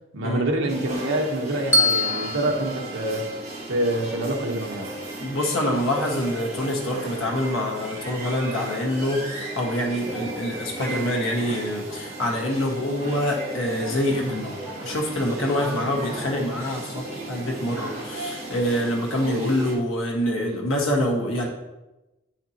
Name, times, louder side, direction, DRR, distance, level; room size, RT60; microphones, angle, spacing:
voice 1, 0.1-3.3 3.7-4.9, right 1 dB, 75° right, 1 dB, 1.1 m, -26 dB
sound 1, 0.7-19.7, right 2 dB, 35° right, 1.6 m, -35 dB
Bell, 1.7-3.9, left 2 dB, 15° left, 0.8 m, -25 dB
voice 2, 5.2-14.5 14.8-21.5, left 1 dB, 85° left, 0 dB, 1.5 m, -26 dB
9.2 x 5.8 x 2.9 m, 1.0 s
head